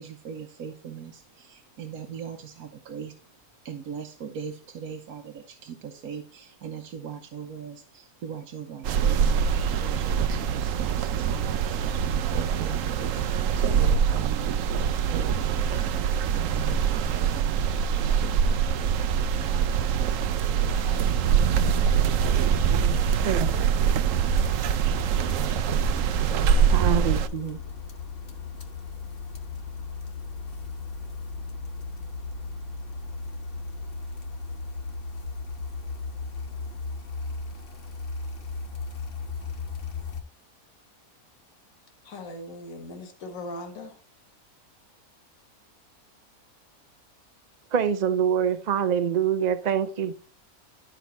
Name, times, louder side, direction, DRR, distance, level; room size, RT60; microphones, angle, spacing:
voice 1, 0.0-3.2 3.6-18.3, right 7 dB, 85° right, 1.4 m, -40 dB
sound 1, 8.8-27.3, right 7 dB, 70° right, 1.0 m, -24 dB
voice 2, 20.7-21.6 22.1-23.1 26.1-27.0 42.0-44.0, left 1 dB, 65° left, 1.8 m, -41 dB
sound 2, 22.7-40.2, left 4 dB, 45° left, 1.2 m, -37 dB
voice 3, 26.7-27.6 47.7-50.1, right 8 dB, 40° right, 0.7 m, -25 dB
11.5 x 5.2 x 4.1 m
omnidirectional pair, 1.5 m